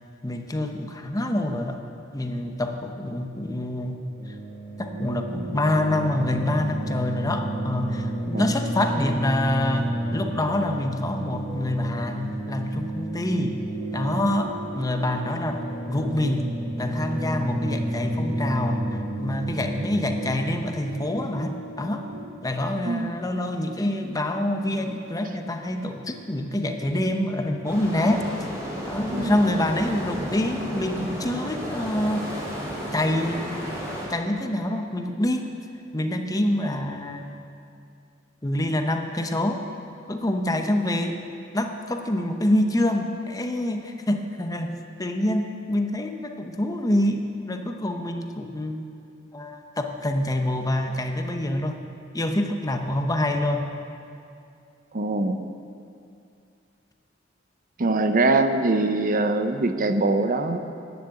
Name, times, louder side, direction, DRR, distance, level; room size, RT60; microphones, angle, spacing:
voice 1, 0.2-1.8 2.1-4.0 4.3-4.4 4.8-13.6 13.9-16.5 16.8-18.8 19.2-22.0 22.4-28.2 28.9-32.5 32.9-35.5 35.9-37.3 38.4-39.6 40.1-41.2 41.5-48.8 49.3-51.8 52.1-53.7, left 1 dB, 20° left, 5 dB, 0.8 m, -26 dB
sound 1, 4.1-22.2, right 1 dB, 80° right, 3.6 m, -31 dB
voice 2, 22.8-23.2 29.1-29.4 54.9-55.5 57.8-60.6, right 2 dB, 45° right, 8 dB, 0.7 m, -23 dB
sound 2, 27.6-34.1, equal, 15° right, 3.7 m, -33 dB
11.5 x 9.6 x 8.7 m, 2.5 s
head